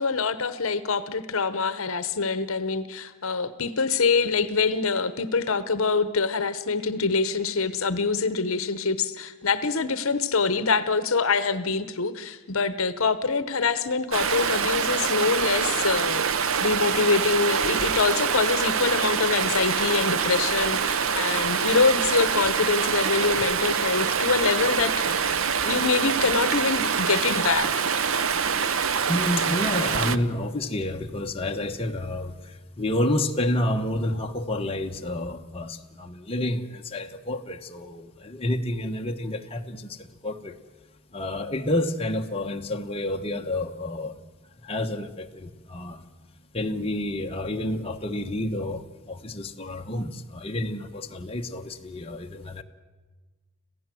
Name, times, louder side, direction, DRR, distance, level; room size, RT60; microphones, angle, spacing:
voice 1, 0.0-16.2 16.6-25.3 25.6-27.9, left 4 dB, 65° left, 1.0 m, -25 dB
Stream, 14.1-30.2, right 6 dB, 60° right, 0.7 m, -25 dB
voice 2, 29.1-40.6 41.1-44.2 44.6-46.0 46.5-52.6, left 1 dB, 25° left, 1.1 m, -29 dB
26.5 x 16.0 x 7.7 m
head